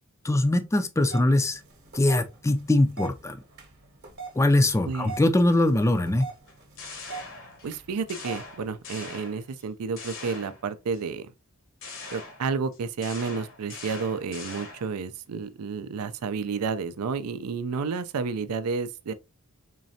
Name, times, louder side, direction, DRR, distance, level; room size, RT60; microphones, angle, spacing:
voice 1, 0.2-1.6 1.9-3.4 4.4-6.3, left 1 dB, 15° left, 0.4 m, -22 dB
sound 1, 1.1-9.3, right 5 dB, 50° right, 0.9 m, -44 dB
sound 2, 6.5-7.8 8.1-9.6 10.0-11.0 11.8-15.0, left 3 dB, 60° left, 0.9 m, -42 dB
voice 2, 7.6-11.3 12.1-19.1, right 5 dB, 80° right, 0.4 m, -31 dB
3.8 x 3.2 x 2.7 m
head